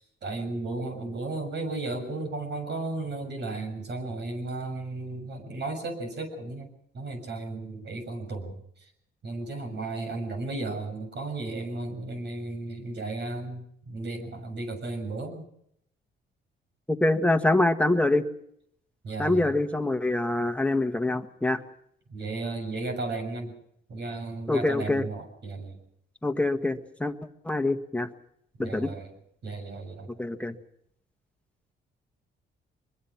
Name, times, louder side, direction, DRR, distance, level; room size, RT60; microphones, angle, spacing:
voice 1, 0.0-6.7 6.9-8.6 9.2-15.5 19.0-19.5 22.1-23.5 23.9-25.8 28.6-29.1 29.4-30.1, right 2 dB, 60° right, 5 dB, 7.0 m, -34 dB
voice 2, 17.0-18.3 19.2-21.6 24.5-25.0 26.2-27.1 27.4-28.1 28.6-28.9 30.2-30.5, left 2 dB, 5° left, 7 dB, 1.8 m, -25 dB
24.0 x 22.0 x 6.1 m, 0.71 s
cardioid pair, 90°, 20 cm